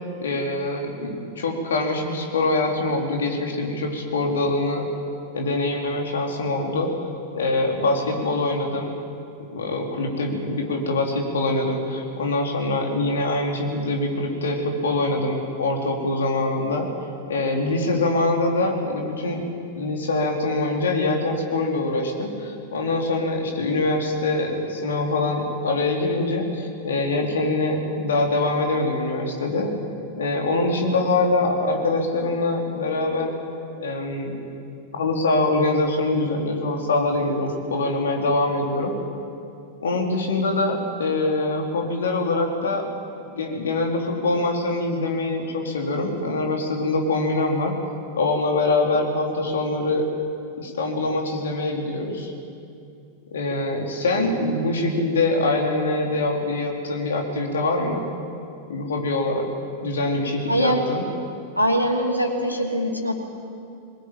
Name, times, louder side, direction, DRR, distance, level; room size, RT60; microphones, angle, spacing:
voice 1, 0.2-4.9 5.3-6.9 7.3-8.9 9.5-16.9 17.3-29.7 30.2-33.3 33.8-34.3 34.9-38.9 39.8-42.9 43.3-47.7 48.2-50.1 50.6-52.3 53.3-58.1 58.7-59.5 59.8-61.0, left 2 dB, 65° left, 2 dB, 3.7 m, -24 dB
voice 2, 60.5-60.8 61.6-63.1, equal, 90° right, 1 dB, 2.9 m, -22 dB
22.0 x 20.0 x 9.0 m, 2.5 s
figure-of-eight pair, 90°, 0 cm